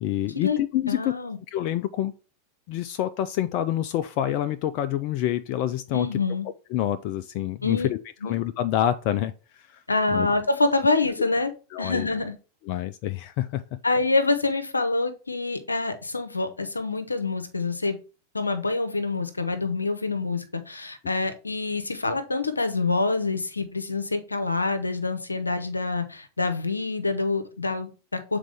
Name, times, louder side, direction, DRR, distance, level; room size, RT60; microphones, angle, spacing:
voice 1, 0.0-1.1 1.5-2.1 2.7-6.1 6.7-8.0 8.2-9.8 10.1-10.3 11.2-11.4 11.7-12.1 12.7-13.8, left 12 dB, 45° left, 0.4 m, -27 dB
voice 2, 0.9-1.4 5.9-6.5 7.6-7.9 8.2-8.3 9.9-11.5 11.8-12.3 13.8-18.0 18.3-28.4, left 3 dB, 80° left, 0.8 m, -26 dB
7.3 x 3.9 x 3.4 m
figure-of-eight pair, 90°, 0 cm